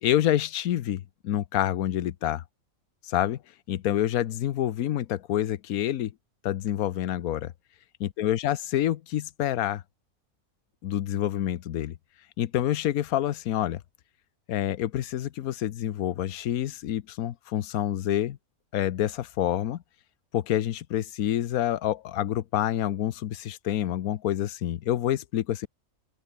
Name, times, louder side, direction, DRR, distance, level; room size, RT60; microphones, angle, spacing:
voice 1, 0.0-2.4 3.0-3.4 3.7-6.1 6.4-7.5 8.0-9.8 10.8-11.9 12.4-13.8 14.5-18.4 18.7-19.8 20.3-25.7, left 12 dB, 85° left, 1.2 m, -27 dB
open air
omnidirectional pair, 1.5 m